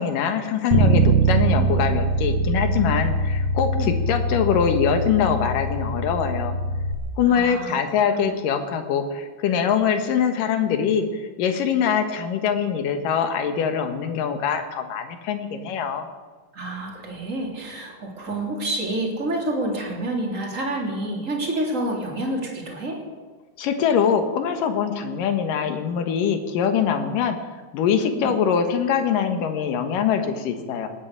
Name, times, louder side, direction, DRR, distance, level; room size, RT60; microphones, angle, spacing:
voice 1, 0.0-6.6 7.2-16.1 23.6-27.4 27.7-30.9, left 7 dB, 65° left, 7 dB, 2.8 m, -23 dB
Bass guitar, 0.7-6.9, right 2 dB, 55° right, 2.4 m, -22 dB
voice 2, 7.3-7.8 8.1-8.3 16.5-23.0 28.1-28.3, right 1 dB, 20° right, -1 dB, 3.1 m, -28 dB
19.0 x 9.3 x 8.2 m, 1.4 s
omnidirectional pair, 4.4 m